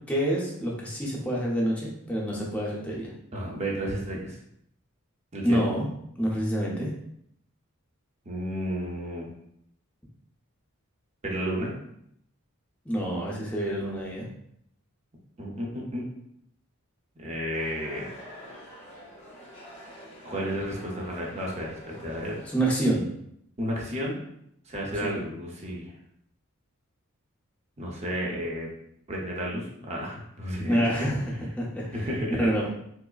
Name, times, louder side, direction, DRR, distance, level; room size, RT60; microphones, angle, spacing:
voice 1, 0.1-3.1 5.4-5.9 6.2-6.9 12.9-14.3 22.5-23.1 25.0-25.2 30.7-32.0 32.4-32.7, right 1 dB, 5° left, -4 dB, 0.6 m, -27 dB
voice 2, 3.3-4.4 5.3-5.6 8.3-9.3 11.2-11.7 15.4-16.0 17.2-18.1 20.2-22.4 23.6-24.2 24.7-25.9 27.8-28.7 29.1-31.1 31.9-32.5, equal, 30° right, -2 dB, 0.7 m, -32 dB
sound 1, 17.5-22.6, equal, 30° left, 1.0 m, -46 dB
4.6 x 2.1 x 2.4 m, 0.73 s
head